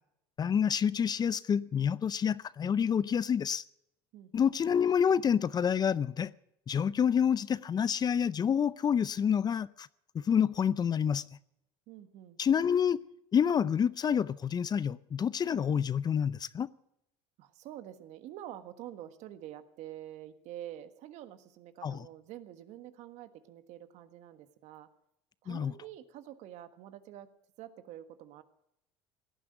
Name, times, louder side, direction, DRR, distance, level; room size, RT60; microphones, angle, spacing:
voice 1, 0.4-3.6 4.3-6.3 6.7-9.9 10.1-11.2 12.4-13.0 13.3-16.7 21.8-22.0 25.5-25.7, left 7 dB, 30° left, 0.5 m, -28 dB
voice 2, 4.1-4.7 7.6-7.7 11.9-12.4 13.0-13.2 17.4-24.9 25.4-27.3 27.6-28.4, right 12 dB, 65° right, 1.5 m, -47 dB
17.5 x 10.0 x 7.8 m
supercardioid pair, 90°, 13 cm